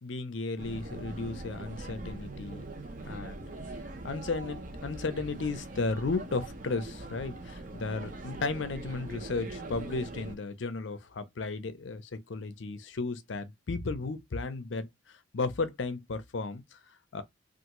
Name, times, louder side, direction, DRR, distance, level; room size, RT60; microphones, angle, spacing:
voice 1, 0.0-2.6 3.0-3.5 4.0-14.9 15.3-16.8 17.1-17.2, left 3 dB, 65° left, 0.5 m, -34 dB
sound 1, 0.6-10.4, right 2 dB, 40° right, 0.6 m, -42 dB
3.4 x 2.5 x 2.9 m
head